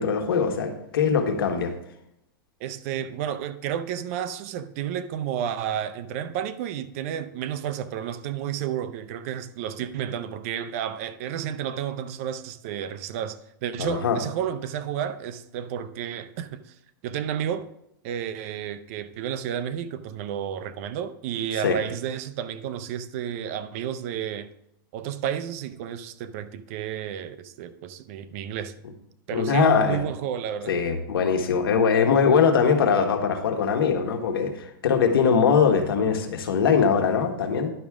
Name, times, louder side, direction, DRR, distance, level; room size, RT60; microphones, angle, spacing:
voice 1, 0.0-1.7 13.8-14.2 21.6-21.8 29.3-30.0 30.7-37.7, left 6 dB, 85° left, 1.4 m, -22 dB
voice 2, 2.6-16.7 17.0-17.7 18.0-24.5 24.9-28.7 29.3-30.8, right 9 dB, 40° right, 0.5 m, -31 dB
10.5 x 6.2 x 3.6 m
supercardioid pair, 165°, 12 cm